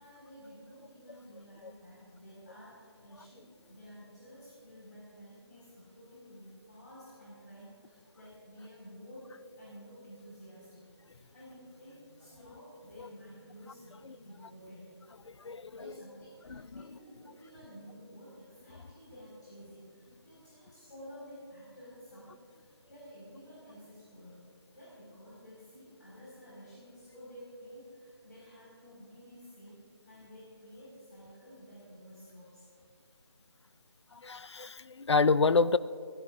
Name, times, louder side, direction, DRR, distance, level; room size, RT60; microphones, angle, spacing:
voice 1, 0.0-10.8 11.1-14.9 15.3-24.4 24.7-32.6, equal, 40° left, -8 dB, 4.9 m, -52 dB
voice 2, 15.3-15.7 16.5-16.8 34.1-35.8, left 4 dB, 85° left, 16 dB, 0.5 m, -28 dB
27.0 x 16.5 x 2.5 m, 2.4 s
figure-of-eight pair, 180°, 14 cm